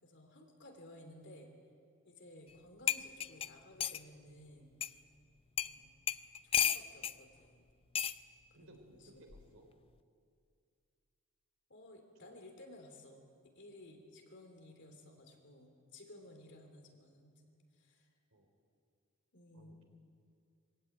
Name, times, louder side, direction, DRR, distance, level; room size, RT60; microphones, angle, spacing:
voice 1, 0.0-1.5 2.0-4.7 5.6-6.0 6.4-7.7 8.6-9.1 11.7-13.2 13.5-18.1 19.3-19.8, left 1 dB, 55° left, 4 dB, 3.2 m, -56 dB
sound 1, 2.5-2.6 2.9-4.0 4.8-4.9 5.6-5.7 6.1-7.2 7.9-8.2 9.3-9.6, left 9 dB, 25° left, 0.4 m, -33 dB
voice 2, 8.5-9.7 12.2-12.3 18.3-18.5 19.5-19.8, right 1 dB, 70° right, 4 dB, 3.8 m, -60 dB
23.0 x 16.0 x 8.9 m, 2.3 s
head